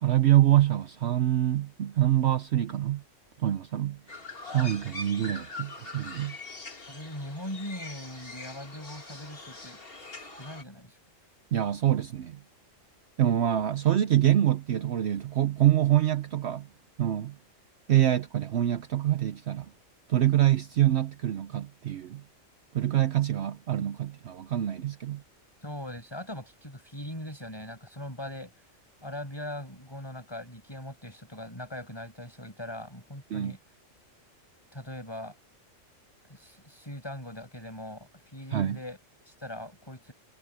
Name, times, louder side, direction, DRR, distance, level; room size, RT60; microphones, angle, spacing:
voice 1, 0.0-3.0 3.4-4.0 4.4-6.4 11.5-12.4 13.2-16.7 17.0-17.4 17.9-19.7 20.1-22.2 22.7-25.2 33.3-33.5 38.5-38.8, right 12 dB, 60° right, 0.9 m, -25 dB
sound 1, 4.1-10.6, left 3 dB, 45° left, 2.6 m, -42 dB
voice 2, 6.9-11.0 25.6-28.5 29.0-33.6 34.7-35.3 36.2-40.1, left 1 dB, 20° left, 5.7 m, -41 dB
omnidirectional pair, 1.3 m